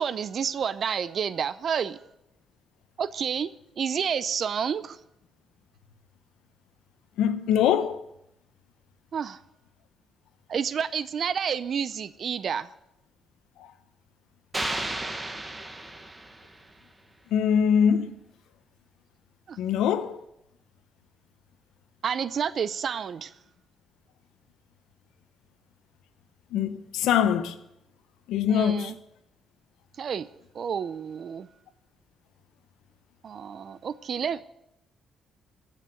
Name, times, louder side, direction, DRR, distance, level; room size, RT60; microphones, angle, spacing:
voice 1, 0.0-2.0 3.0-3.5 3.8-5.0 9.1-9.4 10.5-12.7 19.5-19.6 22.0-23.3 28.5-29.0 30.0-30.3 30.5-31.5 33.2-34.4, right 7 dB, 55° right, 0.5 m, -29 dB
voice 2, 7.2-8.0 17.3-18.1 19.6-20.2 26.5-27.5 28.3-28.9, left 8 dB, 85° left, 1.1 m, -23 dB
sound 1, 14.5-16.7, right 2 dB, 15° right, 1.5 m, -33 dB
15.0 x 6.6 x 9.3 m
cardioid pair, 90°, 0 cm